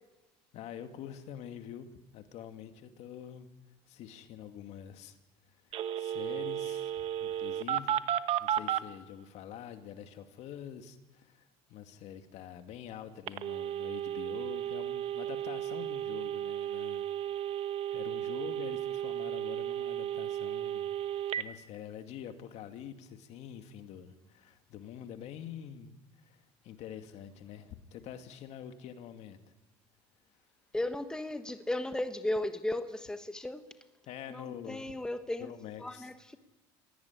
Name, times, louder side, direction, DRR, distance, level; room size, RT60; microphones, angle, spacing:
voice 1, 0.5-3.5 3.9-5.2 6.0-8.0 8.4-17.0 17.9-20.9 21.3-29.4 34.1-34.8 35.4-36.1, left 9 dB, 60° left, 7 dB, 2.4 m, -46 dB
Telephone, 5.7-8.8 13.3-21.4, right 11 dB, 50° right, 1.2 m, -34 dB
voice 2, 30.7-33.7 34.3-35.5 35.8-36.4, left 1 dB, 5° left, 8 dB, 1.3 m, -35 dB
26.0 x 18.0 x 9.8 m, 1.1 s
cardioid pair, 125°, 13 cm